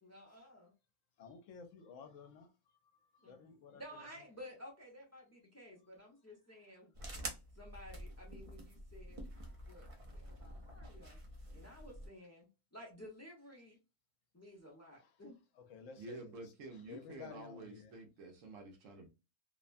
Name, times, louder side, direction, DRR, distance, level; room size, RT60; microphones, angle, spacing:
voice 1, 0.0-0.7 3.2-3.4 3.7-6.9 7.5-9.2 9.7-11.2 11.5-13.8 14.3-15.4, left 1 dB, 20° left, 0.4 m, -54 dB
voice 2, 1.2-2.8 3.1-4.2 9.3-9.6 15.0-15.2 15.5-18.0, left 6 dB, 65° left, 1.0 m, -54 dB
sound 1, 6.9-12.1, right 1 dB, 45° right, 0.4 m, -48 dB
voice 3, 16.0-19.1, right 2 dB, 65° right, 1.0 m, -50 dB
2.8 x 2.2 x 2.4 m
omnidirectional pair, 1.5 m